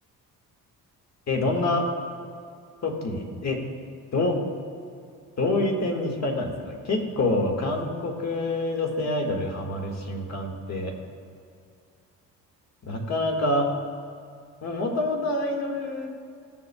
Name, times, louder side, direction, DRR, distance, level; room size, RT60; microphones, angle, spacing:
voice 1, 1.3-1.9 2.8-3.6 4.1-4.4 5.4-10.9 12.8-13.7 14.6-16.1, left 2 dB, 45° left, 2 dB, 1.7 m, -26 dB
15.5 x 7.0 x 2.3 m, 2.4 s
supercardioid pair, 75°, 36 cm